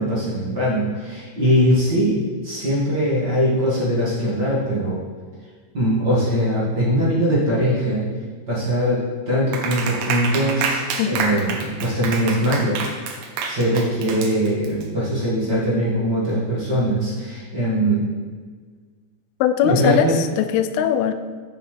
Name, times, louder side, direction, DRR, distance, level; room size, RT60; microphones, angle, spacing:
voice 1, 0.0-5.0 5.7-8.1 8.5-12.8 13.4-18.1 19.6-20.1, equal, 45° right, -9 dB, 1.4 m, -21 dB
Clapping, 9.5-14.8, right 5 dB, 80° right, 2.0 m, -27 dB
voice 2, 19.4-21.1, left 9 dB, 85° left, 8 dB, 2.2 m, -20 dB
7.3 x 6.9 x 3.3 m, 1.5 s
omnidirectional pair, 4.9 m